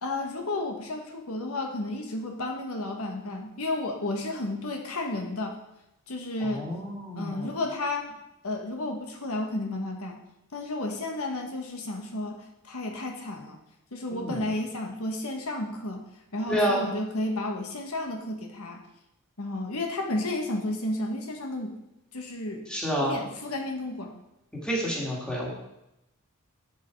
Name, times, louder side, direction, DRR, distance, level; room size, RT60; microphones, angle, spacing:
voice 1, 0.0-5.6 6.1-6.7 7.2-8.1 8.4-10.2 10.5-12.4 12.6-13.6 13.9-16.0 16.3-18.8 19.4-21.7 22.1-22.7 23.0-24.2, left 2 dB, 80° left, 3 dB, 1.2 m, -32 dB
voice 2, 6.4-7.5 14.1-14.5 16.5-16.9 22.7-23.2 24.5-25.5, equal, 5° left, -3 dB, 2.0 m, -29 dB
7.7 x 6.9 x 4.6 m, 0.87 s
head